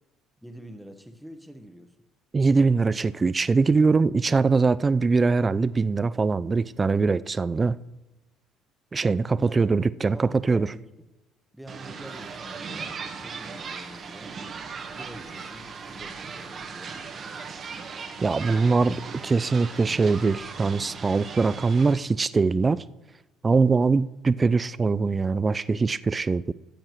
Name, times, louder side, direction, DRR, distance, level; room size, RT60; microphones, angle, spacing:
voice 1, 0.4-1.9 9.4-10.8 11.5-14.4 14.9-17.0 18.4-18.7, equal, 5° right, 1.2 m, -46 dB
voice 2, 2.3-7.8 8.9-10.7 18.2-19.0 19.2-22.8 23.4-26.5, right 4 dB, 30° right, 0.4 m, -22 dB
sound 1, 11.7-21.9, right 5 dB, 45° right, 1.3 m, -38 dB
15.0 x 8.7 x 3.1 m
hypercardioid pair, 55°, 0 cm